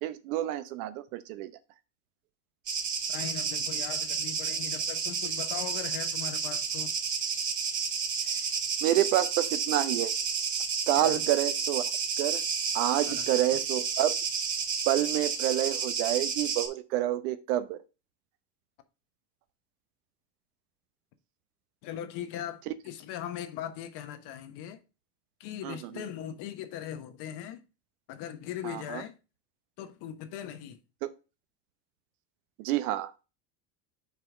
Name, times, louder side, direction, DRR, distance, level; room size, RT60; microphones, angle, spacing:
voice 1, 0.0-1.5 8.2-8.5 8.8-10.1 10.9-11.8 12.2-12.4 12.7-14.2 14.9-17.8 22.7-22.8 25.6-26.0 28.6-29.0 31.0-31.1 32.6-33.1, right 13 dB, 70° right, 0.9 m, -28 dB
sound 1, 2.7-16.7, right 6 dB, 40° right, 1.9 m, -31 dB
voice 2, 3.1-6.9 11.0-11.3 13.1-13.3 21.8-24.8 25.4-27.6 28.1-29.1 29.8-30.8, left 10 dB, 60° left, 1.3 m, -39 dB
5.9 x 4.5 x 4.8 m
supercardioid pair, 105°, 46 cm